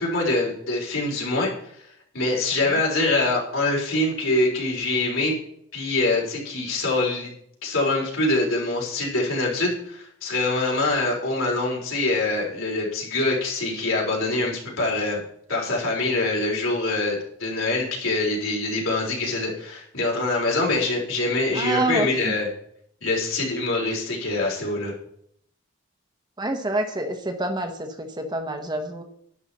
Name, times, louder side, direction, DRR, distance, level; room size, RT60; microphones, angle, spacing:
voice 1, 0.0-1.5 1.8-1.9 2.1-5.3 5.7-7.3 7.6-15.2 15.5-22.5 23.0-24.9, left 2 dB, 80° left, -2 dB, 4.1 m, -24 dB
voice 2, 21.5-22.3 26.4-29.0, right 2 dB, 20° right, 5 dB, 1.0 m, -27 dB
11.0 x 9.8 x 4.2 m, 0.69 s
head